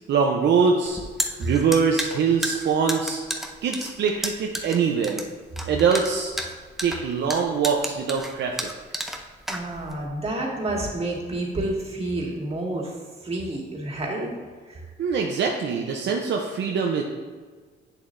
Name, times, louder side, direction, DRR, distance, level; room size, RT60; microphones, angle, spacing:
voice 1, 0.1-1.0 1.4-3.2 3.6-5.2 5.6-6.3 6.8-8.7 15.0-17.0, right 6 dB, 65° right, 1 dB, 0.7 m, -23 dB
sound 1, 0.9-10.1, equal, ahead, 0.7 m, -32 dB
voice 2, 9.5-12.9 13.2-14.3 14.7-14.8, right 2 dB, 30° right, -2 dB, 1.9 m, -29 dB
8.4 x 7.2 x 2.6 m, 1.5 s
cardioid pair, 90°, 20 cm